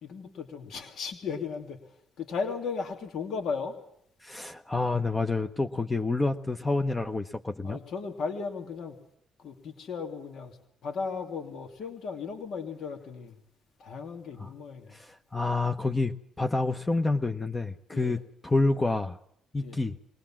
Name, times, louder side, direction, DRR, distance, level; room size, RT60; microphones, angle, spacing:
voice 1, 0.0-3.8 7.6-9.0 9.4-13.4 13.8-15.0 17.9-18.2 19.6-19.8, left 5 dB, 70° left, 4 dB, 2.8 m, -36 dB
voice 2, 4.2-7.8 14.4-14.5 14.9-19.2 19.5-20.0, left 3 dB, 20° left, 6 dB, 0.9 m, -28 dB
23.0 x 18.5 x 7.5 m, 0.71 s
cardioid pair, 90°, 0 cm